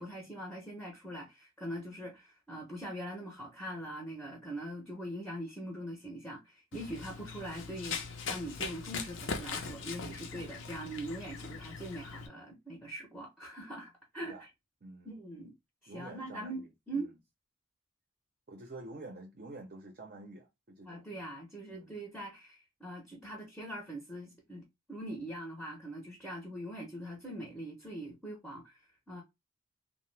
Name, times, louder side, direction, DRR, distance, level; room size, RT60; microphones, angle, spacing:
voice 1, 0.0-14.5 15.0-15.5 15.8-17.1 20.9-29.2, right 1 dB, ahead, 0.6 m, -42 dB
Run, 6.7-12.3, left 5 dB, 70° left, 0.6 m, -40 dB
voice 2, 15.9-17.2 18.5-21.3 21.7-22.0, right 2 dB, 45° right, 0.6 m, -49 dB
2.8 x 2.0 x 3.1 m
head